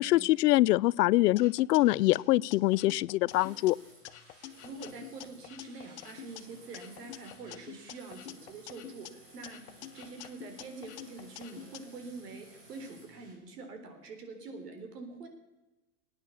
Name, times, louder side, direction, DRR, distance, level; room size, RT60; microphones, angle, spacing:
voice 1, 0.0-3.8, left 17 dB, 85° left, 23 dB, 0.5 m, -24 dB
sound 1, 1.4-3.7 4.0-6.4 6.7-9.1 9.4-11.8, left 12 dB, 50° left, 0.7 m, -47 dB
sound 2, 3.3-13.3, right 1 dB, 25° right, 3.9 m, -57 dB
voice 2, 4.6-9.6 9.9-15.3, right 3 dB, 85° right, 5 dB, 3.9 m, -45 dB
20.0 x 9.5 x 7.0 m, 1.1 s
supercardioid pair, 170°, 46 cm